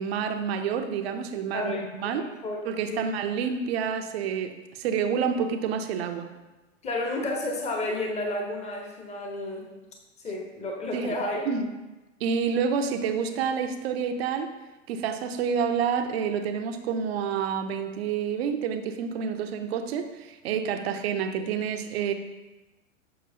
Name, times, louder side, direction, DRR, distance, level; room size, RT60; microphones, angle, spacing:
voice 1, 0.0-2.2 2.6-6.3 10.9-11.2 11.5-11.7 12.2-14.5 14.9-22.1, right 6 dB, 50° right, 7 dB, 0.8 m, -28 dB
voice 2, 1.5-2.6 2.9-3.1 6.8-9.7 10.2-11.5, left 2 dB, 15° left, 1 dB, 1.1 m, -31 dB
7.6 x 6.1 x 2.8 m, 1.1 s
figure-of-eight pair, 100°, 38 cm